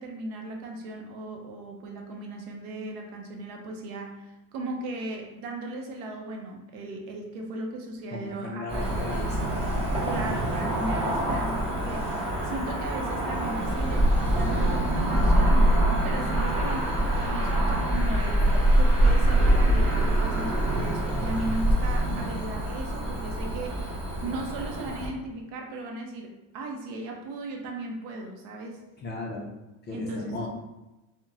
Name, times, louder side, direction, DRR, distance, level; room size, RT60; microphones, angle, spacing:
voice 1, 0.0-15.7 16.0-28.8 29.9-30.5, right 2 dB, 65° right, 2 dB, 0.7 m, -37 dB
voice 2, 8.1-9.5 22.1-22.3 29.0-29.5 29.9-30.5, left 2 dB, 25° left, -3 dB, 0.4 m, -36 dB
Cricket / Motor vehicle (road), 8.7-25.1, right 1 dB, 15° right, 0.8 m, -24 dB
2.8 x 2.1 x 2.4 m, 1.0 s
supercardioid pair, 115°, 43 cm